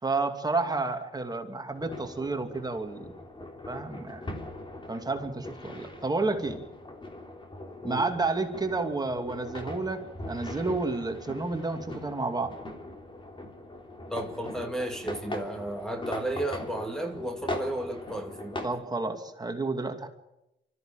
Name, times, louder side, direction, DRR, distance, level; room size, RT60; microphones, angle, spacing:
voice 1, 0.0-3.1 3.7-4.3 4.9-6.6 7.8-12.6 18.6-20.1, right 3 dB, 20° right, 2.6 m, -30 dB
sound 1, 1.7-18.7, left 2 dB, 25° left, 3.5 m, -41 dB
voice 2, 14.1-18.7, right 1 dB, 5° left, 2.4 m, -33 dB
24.5 x 14.0 x 9.1 m
cardioid pair, 90°, 20 cm